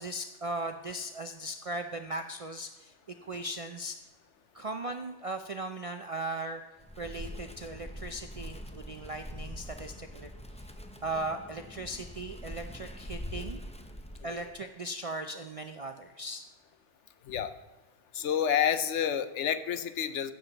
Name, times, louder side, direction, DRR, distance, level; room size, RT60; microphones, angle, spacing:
voice 1, 0.0-2.9 3.2-4.0 4.5-6.6 7.0-10.3 11.0-13.6 14.2-16.4, right 2 dB, 50° right, 6 dB, 0.4 m, -38 dB
Wind, 6.8-14.6, equal, 10° left, 0.4 m, -43 dB
voice 2, 18.1-20.3, left 9 dB, 75° left, 12 dB, 1.0 m, -29 dB
15.5 x 7.2 x 4.0 m, 1.2 s
omnidirectional pair, 1.3 m